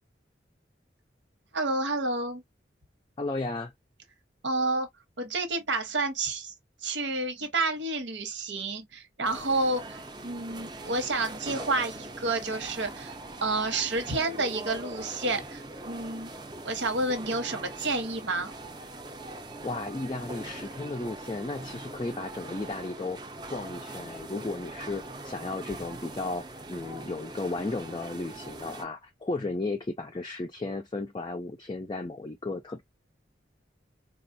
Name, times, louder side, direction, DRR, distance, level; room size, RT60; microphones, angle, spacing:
voice 1, 1.5-2.4 4.4-4.9 5.2-6.5 6.8-13.1 13.4-16.3 16.6-18.5, right 2 dB, 85° right, 1.1 m, -30 dB
voice 2, 3.2-3.7 19.6-23.2 23.5-32.8, left 2 dB, 25° left, 0.4 m, -34 dB
sound 1, 9.2-28.8, right 2 dB, 25° right, 0.6 m, -42 dB
4.2 x 2.4 x 2.6 m
head